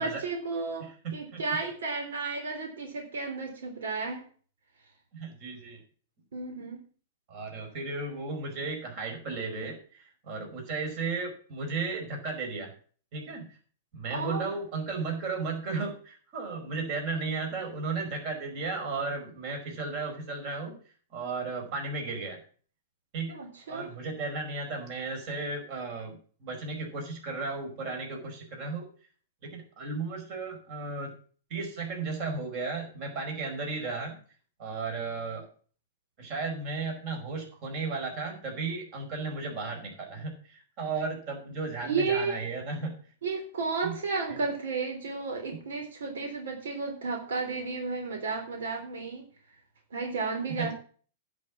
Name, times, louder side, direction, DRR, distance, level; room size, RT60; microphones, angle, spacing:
voice 1, 0.0-0.8 1.1-4.2 6.3-6.8 14.1-14.5 23.3-23.9 41.8-42.4 43.2-49.2 49.9-50.7, right 4 dB, 85° right, 3 dB, 3.5 m, -33 dB
voice 2, 1.0-1.4 5.1-5.8 7.3-12.7 13.1-13.4 13.9-20.8 21.1-22.4 23.1-23.4 23.7-28.9 29.4-31.1 31.5-34.2 34.6-35.5 36.2-42.9 43.8-44.0 44.3-44.4 50.5-50.7, right 4 dB, 40° right, 1 dB, 5.1 m, -34 dB
10.5 x 6.3 x 7.4 m, 0.43 s
hypercardioid pair, 150°, 0 cm